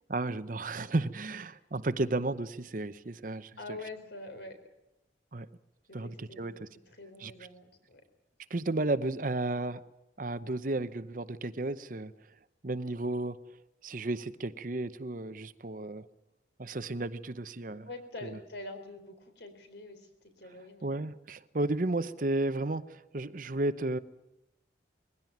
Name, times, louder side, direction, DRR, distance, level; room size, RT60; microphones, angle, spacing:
voice 1, 0.1-3.8 5.3-5.5 5.9-6.7 7.2-7.3 8.5-9.8 10.2-12.1 12.6-13.4 13.8-16.1 16.6-17.9 18.2-18.4 20.8-24.0, right 2 dB, 45° right, 0.8 m, -33 dB
voice 2, 3.6-4.6 5.9-6.5 6.9-8.0 17.9-20.1 20.4-20.9, left 2 dB, 65° left, 3.9 m, -45 dB
21.5 x 16.5 x 9.3 m
head